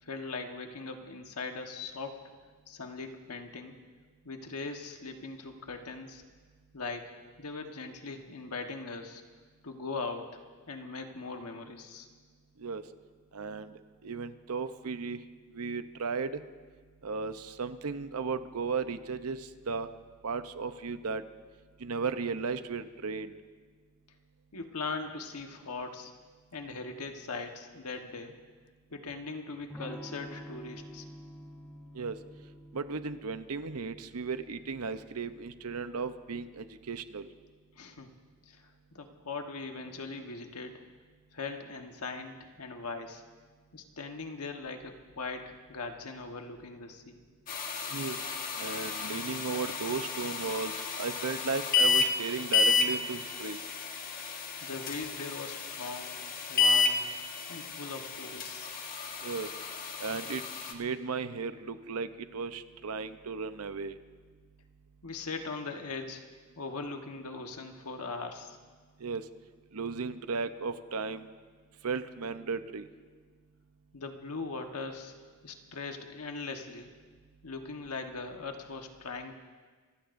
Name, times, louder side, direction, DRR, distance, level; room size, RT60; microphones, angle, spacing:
voice 1, 0.0-2.2 2.7-3.8 4.2-6.2 6.7-7.1 7.4-9.2 9.6-10.4 10.7-12.1 24.5-26.1 26.5-28.3 28.9-31.0 37.8-38.1 38.5-40.8 41.3-43.2 43.7-47.2 54.6-56.2 56.5-58.7 65.0-66.2 66.6-68.6 73.9-75.1 75.4-76.9 77.4-79.4, left 3 dB, 90° left, 4 dB, 1.3 m, -40 dB
voice 2, 13.3-15.2 15.5-16.4 17.0-19.9 20.2-21.2 21.8-23.3 31.9-32.2 32.7-37.3 47.9-48.2 48.5-53.6 59.2-59.5 60.0-60.4 60.7-63.9 69.0-69.2 69.7-71.3 71.8-72.9, right 4 dB, 85° right, 11 dB, 0.7 m, -35 dB
Electric guitar / Strum, 29.7-35.4, equal, 5° left, 1.2 m, -49 dB
sound 1, 47.5-60.7, left 4 dB, 40° left, 1.2 m, -31 dB
26.5 x 16.0 x 2.6 m, 1.5 s
head